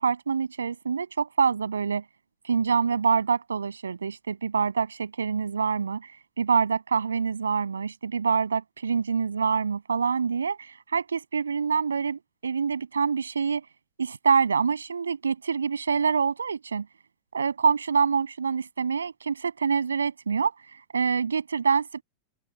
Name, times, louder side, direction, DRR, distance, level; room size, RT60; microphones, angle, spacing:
voice 1, 0.0-2.0 2.4-6.1 6.4-13.6 14.0-16.9 17.3-20.5 20.9-22.0, right 6 dB, 75° right, 7.0 m, -26 dB
open air
figure-of-eight pair, 90°, 0 cm